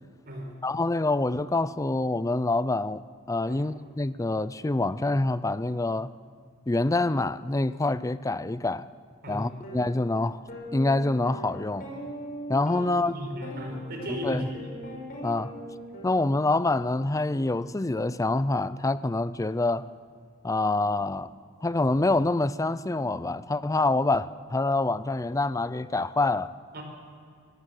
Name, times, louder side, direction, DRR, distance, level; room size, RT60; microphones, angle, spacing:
voice 1, 0.6-3.0 3.3-6.1 6.7-8.9 9.3-10.4 10.7-11.9 12.5-13.1 14.1-14.5 15.2-15.5 16.0-19.9 20.4-21.3 21.6-26.5, left 2 dB, 15° left, 0.5 m, -26 dB
sound 1, 9.6-9.8 10.5-16.8, left 1 dB, 45° left, 5.6 m, -40 dB
voice 2, 12.7-14.6 26.7-26.8, equal, 50° right, 4.9 m, -36 dB
23.5 x 16.5 x 7.9 m
head